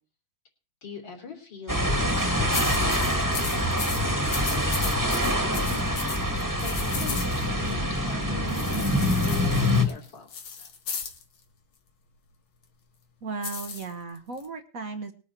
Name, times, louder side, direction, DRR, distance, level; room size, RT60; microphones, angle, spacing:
voice 1, 0.8-6.2 6.6-10.3 10.6-10.7, left 4 dB, 65° left, 2 dB, 3.9 m, -43 dB
sound 1, 1.7-9.8, left 1 dB, 10° right, 1.7 m, -25 dB
sound 2, 2.0-2.3 2.5-7.7 8.5-11.2 13.4-14.5, left 6 dB, 85° left, 2.5 m, -36 dB
voice 2, 13.2-15.1, right 4 dB, 50° right, 8 dB, 1.4 m, -35 dB
20.0 x 8.9 x 4.5 m, 0.38 s
omnidirectional pair, 2.2 m